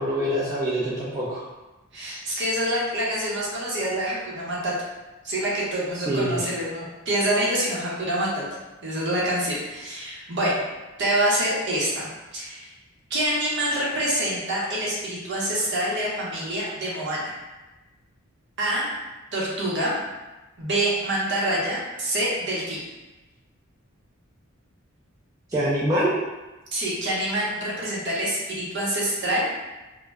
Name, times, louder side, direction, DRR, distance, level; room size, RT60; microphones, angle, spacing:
voice 1, 0.0-1.4 5.9-6.5 25.5-26.1, equal, 15° right, -8 dB, 0.3 m, -25 dB
voice 2, 1.9-4.7 5.2-8.4 8.8-10.6 11.0-12.1 12.3-12.7 13.1-17.3 18.6-18.9 19.3-19.9 20.6-22.8 26.7-29.4, right 1 dB, 55° right, -5 dB, 0.7 m, -26 dB
2.1 x 2.0 x 3.4 m, 1.1 s
head